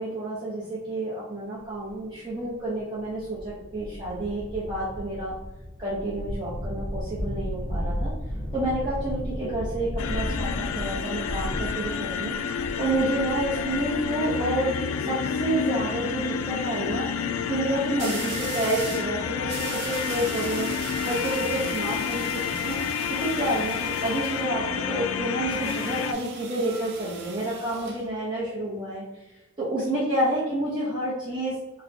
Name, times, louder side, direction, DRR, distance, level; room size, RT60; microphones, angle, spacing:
voice 1, 0.0-5.3 5.8-8.1 8.5-12.3 12.8-14.7 15.0-17.1 17.5-20.7 21.0-22.8 23.1-29.0 29.6-31.5, right 1 dB, 20° right, -8 dB, 0.8 m, -29 dB
sound 1, 1.9-2.0 2.7-2.8 3.1-14.1, equal, 20° left, 0.8 m, -34 dB
sound 2, 10.0-26.1, left 7 dB, 80° left, 0.3 m, -30 dB
sound 3, 18.0-19.1 19.5-24.5 25.5-28.0, right 5 dB, 50° right, 0.6 m, -39 dB
4.7 x 2.1 x 2.7 m, 1.0 s
head